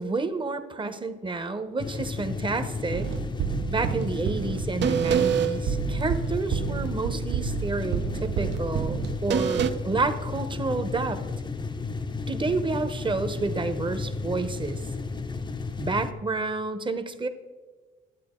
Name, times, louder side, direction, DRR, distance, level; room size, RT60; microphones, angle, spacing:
voice 1, 0.0-3.1 3.7-11.2 12.3-14.8 15.8-17.3, right 3 dB, 25° right, 10 dB, 0.9 m, -30 dB
sound 1, 1.8-16.1, left 4 dB, 25° left, 0.6 m, -33 dB
sound 2, 2.9-9.7, right 8 dB, 65° right, 0.6 m, -28 dB
12.5 x 8.5 x 3.7 m, 1.3 s
cardioid pair, 90°, 20 cm